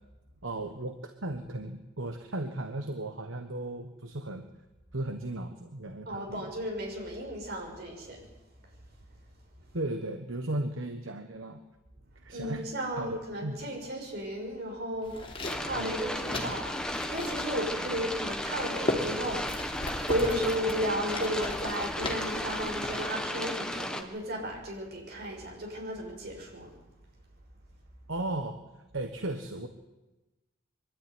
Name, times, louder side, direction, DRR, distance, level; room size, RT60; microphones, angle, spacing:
voice 1, 0.4-4.5 4.9-6.5 9.7-11.6 12.2-12.6 13.0-13.6 15.8-15.9 28.1-28.6 28.9-29.7, right 2 dB, 65° right, 6 dB, 1.4 m, -36 dB
voice 2, 6.1-8.3 12.3-16.8 17.1-19.8 20.1-26.7, equal, 50° right, 0 dB, 6.8 m, -34 dB
sound 1, 15.0-23.1, left 1 dB, 25° left, 3.5 m, -38 dB
sound 2, 15.4-24.0, left 1 dB, 5° left, 1.5 m, -35 dB
23.5 x 13.0 x 9.7 m, 1.1 s
head